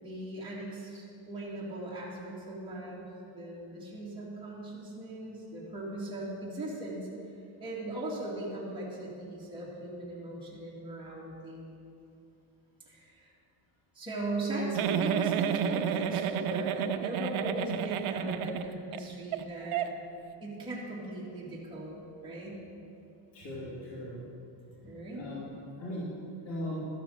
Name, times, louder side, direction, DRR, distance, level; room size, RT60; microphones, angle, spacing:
voice 1, 0.0-3.0 3.3-7.0 7.6-11.6 12.9-13.3 13.9-19.9 20.4-22.6 24.8-25.3, right 1 dB, 10° right, -7 dB, 2.2 m, -38 dB
Giggle, 14.8-19.0 19.3-19.4 19.7-19.9, right 9 dB, 85° right, 0.7 m, -30 dB
voice 2, 23.3-24.2 25.1-25.5 25.8-26.1 26.4-26.9, equal, 65° left, -9 dB, 3.0 m, -38 dB
13.0 x 6.7 x 6.4 m, 2.6 s
cardioid pair, 145°, 49 cm